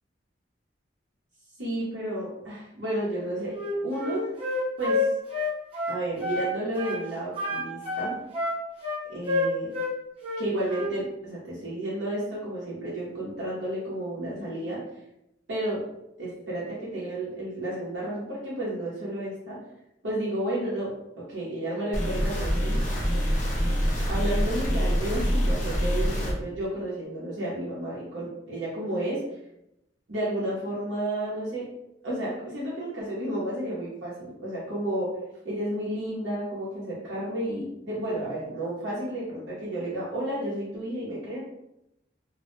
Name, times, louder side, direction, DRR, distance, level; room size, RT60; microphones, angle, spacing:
voice 1, 1.6-3.6 3.8-4.3 4.8-5.1 5.9-8.2 9.1-9.7 10.4-14.8 15.5-15.8 16.2-19.6 20.0-22.8 24.1-29.2 30.1-31.7 32.0-35.2 35.4-41.4, right 1 dB, 80° right, -7 dB, 0.7 m, -32 dB
Wind instrument woodwind instrument, 3.5-6.5 6.8-7.0 7.4-9.9 10.2-10.9, left 2 dB, 30° right, 0.6 m, -28 dB
sound 1, 21.9-26.3, equal, 45° left, 0.7 m, -25 dB
2.1 x 2.0 x 3.0 m, 0.85 s
head